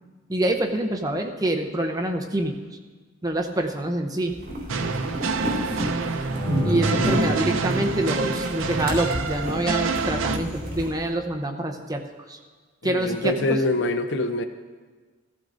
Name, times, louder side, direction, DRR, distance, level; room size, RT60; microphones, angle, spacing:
voice 1, 0.3-2.5 3.2-4.3 6.6-12.0 12.3-12.4 12.8-13.6, right 1 dB, 15° right, 3 dB, 0.7 m, -26 dB
sound 1, 4.3-10.9, right 1 dB, 45° right, 3.3 m, -30 dB
sound 2, 4.7-10.4, right 4 dB, 70° right, 0.6 m, -27 dB
sound 3, 6.3-8.2 9.2-10.7, left 3 dB, 20° left, 2.3 m, -38 dB
voice 2, 12.8-14.4, left 2 dB, 55° left, 8 dB, 0.7 m, -24 dB
15.0 x 14.5 x 2.6 m, 1.4 s
head